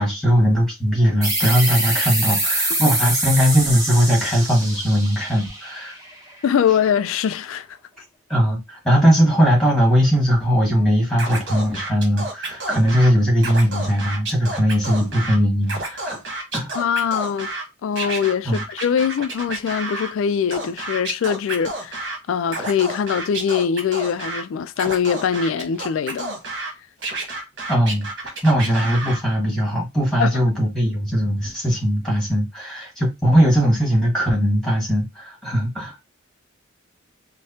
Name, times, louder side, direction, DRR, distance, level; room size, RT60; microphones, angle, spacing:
voice 1, 0.0-6.0 8.3-16.2 16.5-16.7 18.4-18.6 27.7-36.0, equal, ahead, 1.5 m, -19 dB
sound 1, 1.2-6.5, right 1 dB, 15° right, 0.9 m, -25 dB
voice 2, 6.4-7.8 16.8-17.5 17.8-26.4 30.2-30.3, left 7 dB, 70° left, 0.3 m, -22 dB
Scratching (performance technique), 11.2-13.1 13.4-15.4 15.6-17.6 18.0-20.1 20.5-22.2 22.5-24.4 24.8-26.7 27.0-29.2, right 2 dB, 55° right, 1.4 m, -30 dB
4.7 x 2.1 x 2.8 m
head